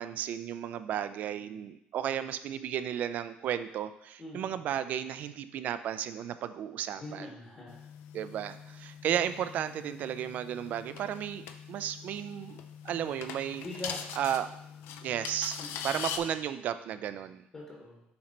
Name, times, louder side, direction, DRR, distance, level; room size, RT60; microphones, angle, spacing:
voice 1, 0.0-7.3 8.1-12.6 12.8-13.7 14.2-14.5 15.0-17.4, right 10 dB, 45° right, 12 dB, 0.3 m, -34 dB
voice 2, 4.2-4.6 7.0-7.9 13.6-14.0 15.6-15.9 17.5-18.0, left 1 dB, 25° left, -3 dB, 1.0 m, -43 dB
sound 1, 7.7-16.2, left 8 dB, 80° left, 0.5 m, -43 dB
7.0 x 3.1 x 5.1 m, 0.78 s
cardioid pair, 180°, 4 cm